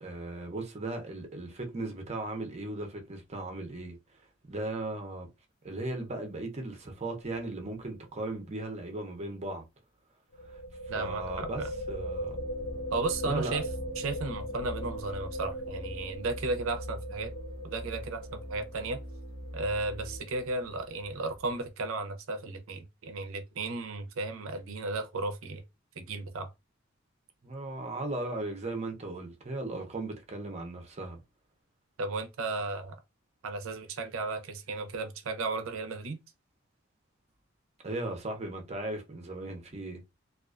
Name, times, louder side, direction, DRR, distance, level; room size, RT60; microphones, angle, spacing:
voice 1, 0.0-4.0 4.5-5.3 5.6-9.6 10.5-10.6 10.9-12.4 13.2-13.6 27.4-31.2 37.8-40.0, right 2 dB, 30° right, 0.6 m, -37 dB
sound 1, 7.2-7.5 7.7-7.8 10.3-21.7, equal, 60° left, 0.5 m, -40 dB
voice 2, 10.9-11.7 12.9-13.7 14.0-17.3 17.6-19.0 19.5-25.6 26.0-26.5 32.0-32.9 33.4-36.2, right 3 dB, 75° right, 0.5 m, -34 dB
sound 2, 12.4-20.2, equal, 85° left, 0.9 m, -43 dB
2.3 x 2.3 x 2.3 m
head